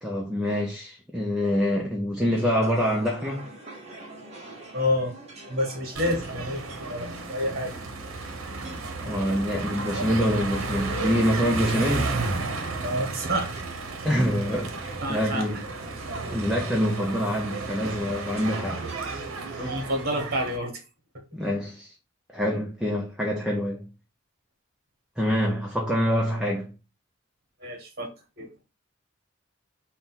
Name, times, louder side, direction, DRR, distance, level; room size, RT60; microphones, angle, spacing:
voice 1, 0.0-3.5 9.0-12.1 14.0-15.6 16.3-19.8 21.3-21.9 22.3-23.9 25.2-26.7, equal, 5° right, 0.5 m, -26 dB
sound 1, 2.3-20.2, right 2 dB, 30° right, 0.9 m, -45 dB
voice 2, 4.7-5.1 5.5-7.7 12.8-13.6 15.0-15.5 19.3-20.8 27.6-28.1 28.4-28.5, equal, 45° right, 1.2 m, -29 dB
sound 2, 6.0-20.6, right 3 dB, 85° right, 0.7 m, -33 dB
3.8 x 2.2 x 4.0 m
head